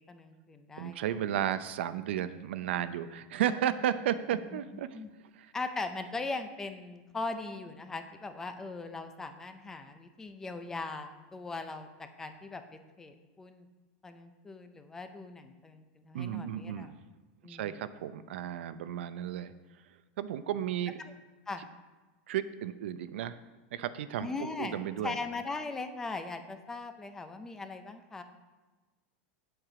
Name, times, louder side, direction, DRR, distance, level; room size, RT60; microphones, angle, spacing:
voice 1, 0.1-1.0 4.5-4.6 4.9-5.1 5.5-12.6 13.0-13.7 14.0-16.9 17.4-17.8 21.0-21.1 21.5-21.6 24.2-28.2, left 3 dB, 10° left, 8 dB, 0.5 m, -39 dB
voice 2, 0.8-4.9 5.4-5.5 16.1-16.9 17.4-19.5 20.2-21.0 22.3-23.4 23.7-25.2, right 10 dB, 85° right, 12 dB, 0.6 m, -33 dB
9.2 x 7.8 x 4.9 m, 1.2 s
supercardioid pair, 180°, 6 cm